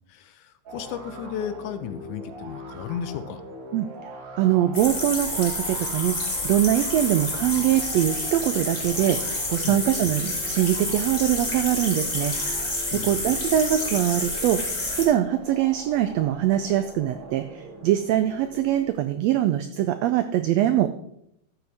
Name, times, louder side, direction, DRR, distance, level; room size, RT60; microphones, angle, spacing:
voice 1, 0.1-3.4 9.6-9.8 12.9-13.4, left 9 dB, 80° left, 11 dB, 2.1 m, -34 dB
sound 1, 0.7-19.1, right 1 dB, 45° right, 1.8 m, -42 dB
voice 2, 4.4-6.2 6.4-12.5 12.9-14.6 15.0-20.9, right 12 dB, 85° right, 9 dB, 1.5 m, -23 dB
sound 2, 4.7-15.1, left 2 dB, 20° left, 1.0 m, -29 dB
12.5 x 7.8 x 3.5 m, 0.75 s
omnidirectional pair, 3.5 m